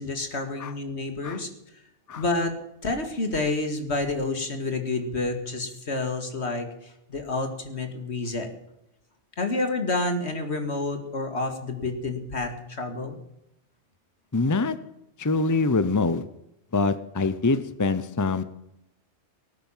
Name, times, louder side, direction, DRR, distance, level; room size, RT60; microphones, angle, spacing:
voice 1, 0.0-1.5 2.2-2.6 2.8-6.7 7.1-8.5 9.4-13.2, left 2 dB, 70° left, 6 dB, 2.4 m, -29 dB
voice 2, 14.3-14.7 15.2-16.2 16.7-18.4, left 3 dB, 20° left, 13 dB, 0.7 m, -24 dB
19.0 x 9.4 x 7.4 m, 0.84 s
omnidirectional pair, 1.2 m